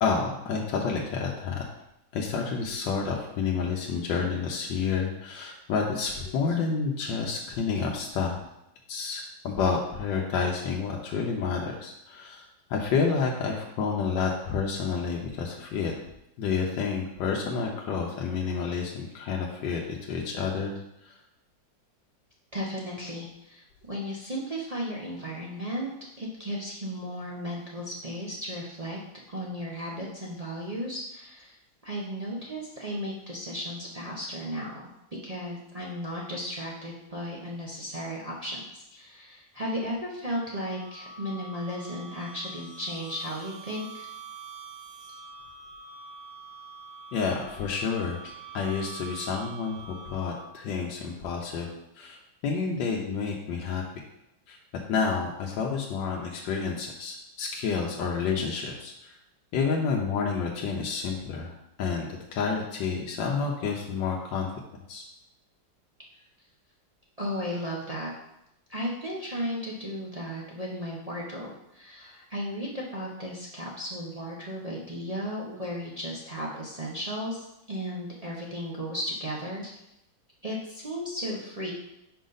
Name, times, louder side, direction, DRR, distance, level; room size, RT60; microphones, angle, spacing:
voice 1, 0.0-1.6 2.1-8.4 8.9-15.9 16.4-20.7 21.0-21.1 47.1-51.7 52.0-53.8 54.5-54.6 54.9-59.1 59.5-64.5 64.9-65.0, left 5 dB, 85° left, -1 dB, 1.4 m, -29 dB
voice 2, 22.5-25.9 26.2-29.0 29.3-31.5 31.8-34.9 35.2-44.1 67.2-68.1 68.7-79.8 80.4-81.7, equal, 50° right, -5 dB, 0.4 m, -35 dB
sound 1, 40.3-50.7, right 4 dB, 70° right, 2.0 m, -45 dB
5.2 x 5.0 x 3.9 m, 0.85 s
omnidirectional pair, 2.0 m